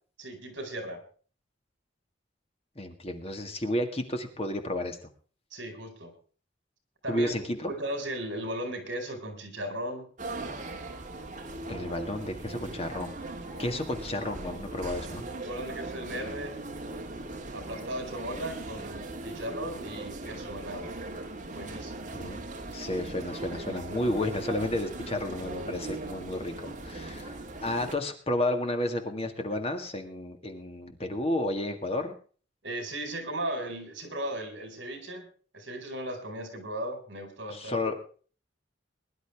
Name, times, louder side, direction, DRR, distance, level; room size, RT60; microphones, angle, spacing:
voice 1, 0.2-1.0 5.5-6.1 7.0-7.3 7.7-10.1 15.4-16.6 17.5-20.9 21.5-22.1 32.6-35.3 35.5-37.8, right 1 dB, 65° right, 5 dB, 4.9 m, -36 dB
voice 2, 2.8-5.0 7.1-7.7 11.7-13.1 13.6-15.2 22.1-32.2 37.5-37.9, left 1 dB, 30° left, 5 dB, 1.9 m, -32 dB
sound 1, 10.2-28.0, right 2 dB, 40° right, 2.0 m, -39 dB
21.5 x 11.0 x 3.5 m, 0.41 s
head